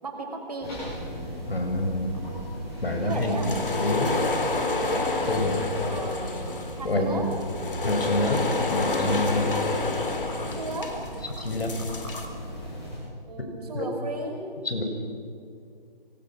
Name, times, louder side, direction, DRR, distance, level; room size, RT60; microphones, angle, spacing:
voice 1, 0.0-0.8 3.0-3.6 5.8-7.3 10.4-11.0 13.3-14.5, right 2 dB, 40° right, 2 dB, 5.0 m, -35 dB
sound 1, 0.6-13.0, equal, 10° left, 6.3 m, -37 dB
voice 2, 1.5-2.1 2.8-4.2 5.3-5.6 6.8-7.2 7.8-9.5 11.4-11.8 13.7-13.9 14.6-14.8, left 1 dB, 85° left, 4 dB, 6.4 m, -27 dB
sound 2, 3.1-12.3, left 3 dB, 65° left, 3.9 m, -29 dB
28.0 x 24.5 x 6.2 m, 2.3 s
hypercardioid pair, 175°, 29 cm